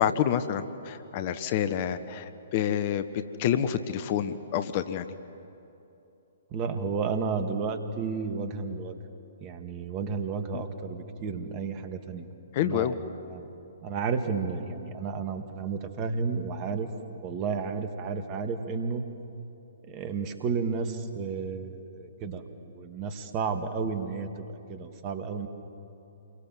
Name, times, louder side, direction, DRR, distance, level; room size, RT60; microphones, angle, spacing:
voice 1, 0.0-3.1 3.4-5.1 10.5-10.6 12.5-13.0, left 9 dB, 40° left, 12 dB, 1.1 m, -28 dB
voice 2, 6.5-9.0 9.4-12.3 12.6-13.0 13.2-13.5 13.8-16.9 17.2-19.0 19.8-22.4 22.7-25.5, right 5 dB, 30° right, 8 dB, 2.0 m, -32 dB
28.0 x 23.0 x 7.6 m, 2.9 s
figure-of-eight pair, 125°, 0 cm